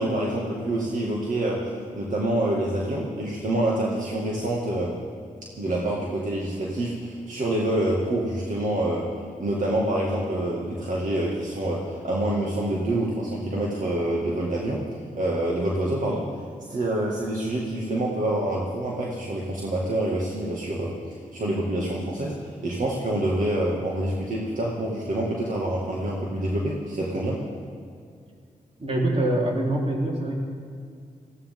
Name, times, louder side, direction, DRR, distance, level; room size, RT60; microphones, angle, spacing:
voice 1, 0.0-5.0 5.6-9.1 9.4-14.8 15.2-16.3 16.7-21.0 21.3-22.4 22.6-27.4, right 1 dB, 65° right, -4 dB, 2.3 m, -26 dB
voice 2, 28.8-30.4, right 1 dB, 45° right, -3 dB, 4.1 m, -24 dB
20.0 x 16.0 x 3.8 m, 2.2 s
cardioid pair, 65°, 14 cm